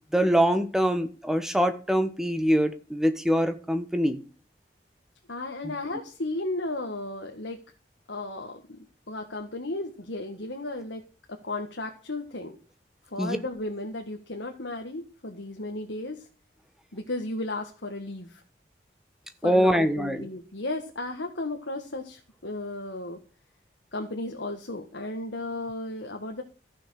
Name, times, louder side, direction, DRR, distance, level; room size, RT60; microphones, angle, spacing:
voice 1, 0.1-4.2 5.6-5.7 13.2-13.4 19.4-20.2, equal, 5° right, 9 dB, 1.2 m, -24 dB
voice 2, 5.3-7.6 8.1-11.0 11.4-12.5 13.1-16.2 16.9-18.4 19.4-23.2 23.9-26.4, left 2 dB, 80° left, 3 dB, 1.8 m, -34 dB
14.5 x 6.5 x 6.5 m, 0.37 s
head